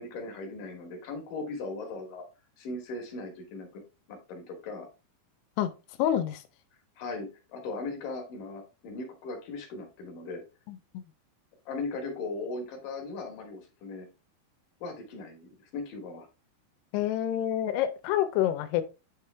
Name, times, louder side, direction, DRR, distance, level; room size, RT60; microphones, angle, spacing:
voice 1, 0.0-2.2 2.6-3.8 4.1-4.9 7.0-10.4 11.7-14.1 14.8-16.3, left 3 dB, 60° left, 2.7 m, -38 dB
voice 2, 6.0-6.4 10.7-10.8 16.9-18.8, left 11 dB, 80° left, 2.7 m, -27 dB
9.1 x 3.6 x 3.3 m
omnidirectional pair, 4.8 m